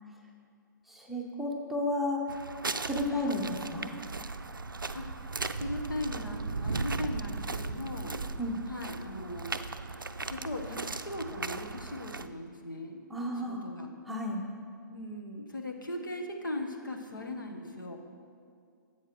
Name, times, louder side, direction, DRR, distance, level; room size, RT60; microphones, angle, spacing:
voice 1, 0.9-2.2 2.8-3.9 8.4-8.6 13.1-13.6 14.0-14.4, left 1 dB, ahead, -1 dB, 0.9 m, -32 dB
sound 1, 2.3-12.3, right 3 dB, 85° right, 0.4 m, -37 dB
voice 2, 5.6-8.2 8.7-9.5 10.3-13.0 13.5-13.9 14.9-18.0, left 1 dB, 75° left, 2 dB, 1.1 m, -38 dB
14.5 x 7.8 x 3.0 m, 2.2 s
figure-of-eight pair, 120°, 11 cm